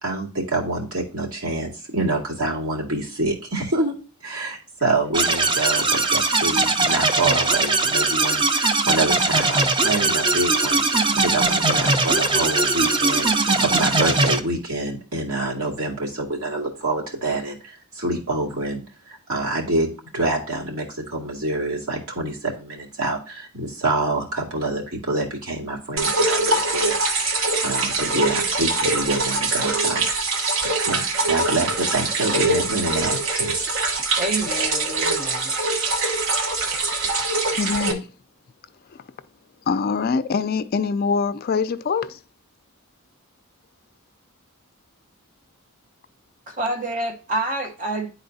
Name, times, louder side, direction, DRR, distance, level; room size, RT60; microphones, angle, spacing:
voice 1, 0.0-3.9 4.2-30.1 30.9-33.5, right 2 dB, 80° right, 2.3 m, -27 dB
sound 1, 5.1-14.4, right 3 dB, 20° right, 0.5 m, -20 dB
sound 2, 26.0-37.9, right 3 dB, 60° right, 1.0 m, -23 dB
voice 2, 34.2-35.5 46.5-48.1, right 2 dB, 35° right, 1.0 m, -28 dB
voice 3, 37.2-38.1 38.9-39.1 39.7-42.2, left 5 dB, 45° left, 0.3 m, -24 dB
10.5 x 4.2 x 2.7 m
head